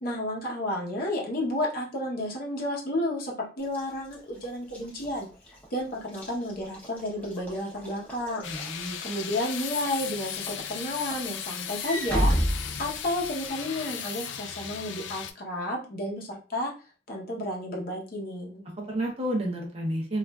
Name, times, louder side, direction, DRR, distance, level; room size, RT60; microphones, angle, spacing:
voice 1, 0.0-5.3 5.7-8.5 9.0-16.7 17.1-18.6, left 1 dB, 50° left, -1 dB, 0.8 m, -32 dB
Walk footsteps / Slam, 3.6-9.3 9.8-10.1 10.5-13.5, equal, 10° left, 0.7 m, -32 dB
sound 1, 8.4-15.3, left 8 dB, 70° left, 0.3 m, -36 dB
voice 2, 8.5-9.0 18.8-20.2, right 1 dB, 30° right, 0 dB, 0.7 m, -30 dB
3.1 x 2.4 x 2.2 m, 0.35 s
head